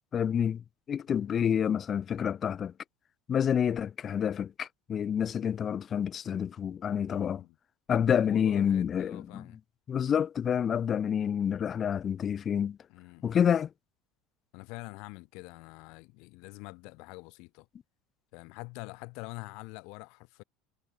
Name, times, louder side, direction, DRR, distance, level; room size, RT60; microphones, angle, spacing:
voice 1, 0.1-2.7 3.3-7.4 7.9-9.5 9.9-12.8 13.2-13.7, left 8 dB, 25° left, 0.5 m, -28 dB
voice 2, 7.0-7.6 7.9-9.6 12.9-13.4 14.5-17.7 18.3-20.4, left 29 dB, 60° left, 2.0 m, -46 dB
cardioid pair, 150°, 0 cm